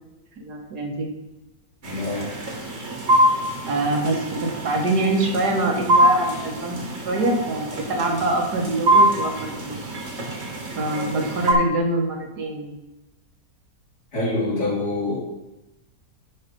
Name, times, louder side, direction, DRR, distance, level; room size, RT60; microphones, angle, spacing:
voice 1, 0.4-1.1 3.6-6.8 7.0-9.8 10.8-12.7, right 2 dB, 85° right, 1 dB, 2.1 m, -24 dB
voice 2, 1.8-2.3 14.1-15.2, left 2 dB, 80° left, -7 dB, 4.5 m, -25 dB
sound 1, 1.8-11.5, right 1 dB, 45° right, 1.7 m, -24 dB
10.5 x 5.0 x 5.3 m, 0.97 s
omnidirectional pair, 1.7 m